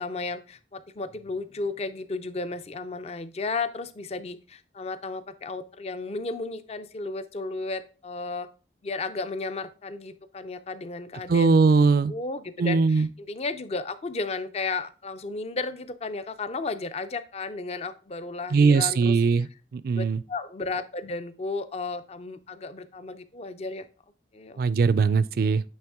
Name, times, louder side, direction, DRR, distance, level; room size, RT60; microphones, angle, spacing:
voice 1, 0.0-8.5 8.8-19.5 19.9-23.9 24.3-24.6, left 3 dB, 35° left, 0.5 m, -34 dB
voice 2, 11.3-12.1 12.6-13.1 18.5-19.5 19.7-20.2 24.6-25.6, right 4 dB, 55° right, 0.3 m, -20 dB
8.8 x 3.2 x 3.5 m
head